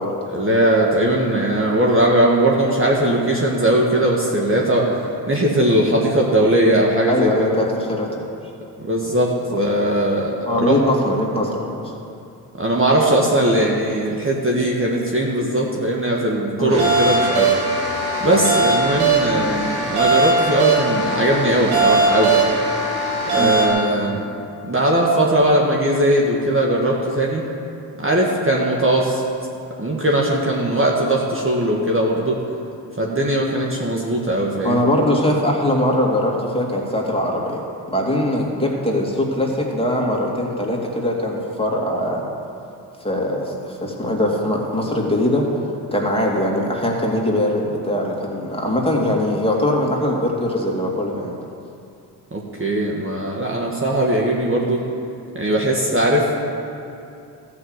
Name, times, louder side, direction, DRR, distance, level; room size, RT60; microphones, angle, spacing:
voice 1, 0.3-4.9 5.3-7.3 8.8-10.4 10.7-10.8 12.6-17.5 18.2-22.3 23.3-24.2 24.7-27.4 28.0-29.2 29.8-32.4 33.0-34.8 52.3-54.8 55.4-56.3, right 1 dB, 25° right, -2 dB, 1.7 m, -19 dB
voice 2, 7.1-8.3 10.4-11.9 16.6-16.8 18.3-18.4 23.4-23.6 34.6-37.6 37.9-42.2 43.0-45.4 45.9-51.4, left 1 dB, 10° left, -2 dB, 2.7 m, -21 dB
sound 1, 16.7-23.7, right 3 dB, 80° right, 2.4 m, -19 dB
13.0 x 6.0 x 8.0 m, 2.6 s
supercardioid pair, 55°, 47 cm